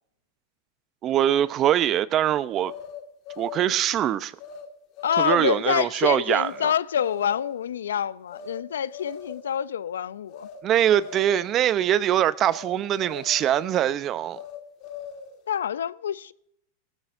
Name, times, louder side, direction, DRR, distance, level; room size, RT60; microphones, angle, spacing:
voice 1, 1.0-2.7 3.4-4.4 5.2-6.7 10.6-14.4, right 11 dB, 35° right, 0.6 m, -23 dB
sound 1, 2.6-3.7 4.4-4.7 5.0-5.6 6.3-6.6 6.9-7.5 8.3-8.6 8.9-9.5 10.3-10.6 10.9-11.5 12.4-12.7 13.0-13.8 14.3-15.4, left 6 dB, 50° left, 1.8 m, -40 dB
voice 2, 5.0-10.5 15.5-16.3, left 8 dB, 85° left, 0.4 m, -27 dB
18.5 x 14.0 x 2.6 m
hypercardioid pair, 110°, 0 cm